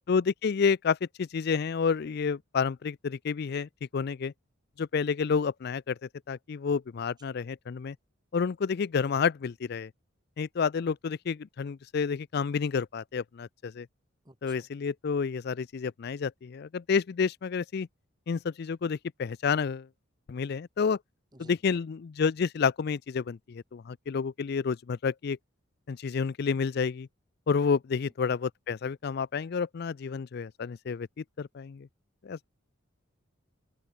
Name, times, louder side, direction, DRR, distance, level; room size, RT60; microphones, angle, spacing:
voice 1, 0.1-4.3 4.8-6.0 6.3-8.0 8.3-9.9 10.4-13.9 14.4-17.9 18.3-19.9 20.3-21.0 21.4-25.4 25.9-27.1 27.5-31.9 32.2-32.4, left 5 dB, 50° left, 0.4 m, -30 dB
voice 2, 14.2-14.7 21.3-21.5 27.9-28.0, right 2 dB, 20° right, 2.8 m, -53 dB
head